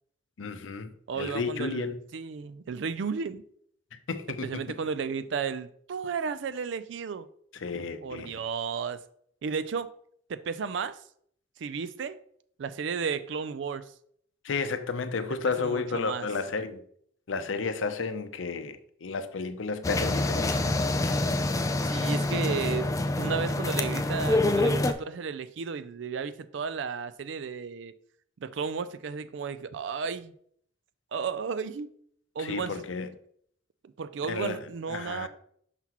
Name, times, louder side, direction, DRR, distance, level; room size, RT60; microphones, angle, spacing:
voice 1, 0.4-0.9 1.2-2.0 4.1-4.6 7.6-8.4 14.4-16.8 17.3-20.7 21.0-21.3 32.4-33.1 34.3-34.6 34.9-35.3, left 4 dB, 85° left, 0.6 m, -32 dB
voice 2, 1.1-3.4 4.4-7.3 8.0-9.0 9.4-9.9 10.3-11.0 11.6-12.2 12.6-13.9 15.6-16.3 21.8-22.9 23.2-27.9 28.4-30.3 31.1-31.9 32.4-32.8 34.0-35.3, right 5 dB, 65° right, 0.4 m, -33 dB
sound 1, 19.8-24.9, left 2 dB, 15° left, 0.3 m, -26 dB
5.8 x 5.8 x 2.9 m
head